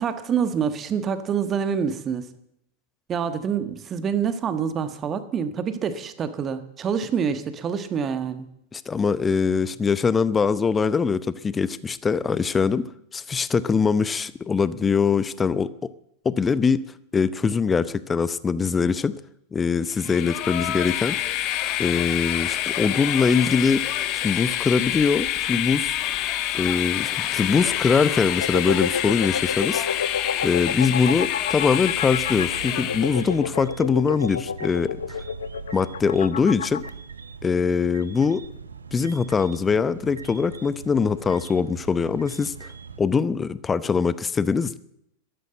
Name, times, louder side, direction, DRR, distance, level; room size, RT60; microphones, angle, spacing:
voice 1, 0.0-2.3 3.1-8.5, right 7 dB, 25° right, 12 dB, 1.4 m, -26 dB
voice 2, 8.7-12.8 13.1-15.7 16.2-16.8 17.1-19.1 19.5-21.2 21.8-23.9 24.2-26.0 26.5-30.0 30.4-35.2 35.7-36.8 37.4-38.4 38.9-42.7 43.0-44.8, left 5 dB, 15° left, 18 dB, 0.7 m, -22 dB
Train, 19.9-33.4, left 12 dB, 40° left, 1.5 m, -27 dB
sound 1, 28.4-36.9, left 7 dB, 65° left, 0.7 m, -30 dB
sound 2, 32.1-43.0, right 5 dB, 75° right, 1.0 m, -41 dB
13.5 x 13.0 x 7.8 m, 0.77 s
figure-of-eight pair, 90°, 0 cm